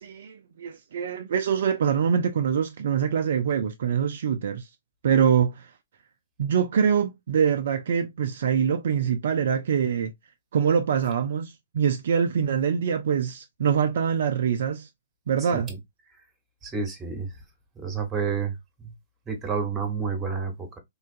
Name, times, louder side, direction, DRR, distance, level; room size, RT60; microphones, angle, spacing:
voice 1, 0.0-4.7 5.0-5.7 6.4-10.1 10.5-14.9 15.3-15.7, right 7 dB, 55° right, 0.3 m, -24 dB
voice 2, 15.4-15.8 16.6-17.3 17.8-18.5 18.8-18.9 19.3-20.8, right 5 dB, 15° right, 1.1 m, -30 dB
3.5 x 2.3 x 2.5 m
figure-of-eight pair, 120°, 0 cm